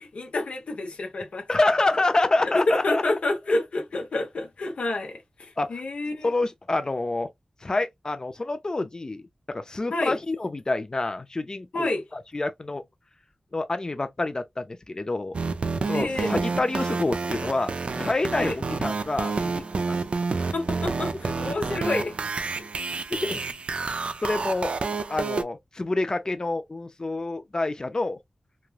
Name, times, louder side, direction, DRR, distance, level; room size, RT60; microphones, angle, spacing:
voice 1, 0.0-1.5 2.4-6.3 9.9-10.2 11.7-12.1 15.9-16.3 18.4-18.6 20.5-22.2 22.8-22.9, left 2 dB, 80° left, 0.9 m, -28 dB
voice 2, 1.5-3.0 5.6-5.7 6.2-7.3 7.6-12.8 13.5-15.4 15.9-20.2 23.1-23.4 24.2-24.7 25.1-28.2, left 2 dB, 35° left, 0.5 m, -27 dB
sound 1, 15.3-25.4, right 4 dB, 65° right, 0.4 m, -29 dB
3.1 x 2.3 x 2.3 m
wide cardioid pair, 85°, 2 cm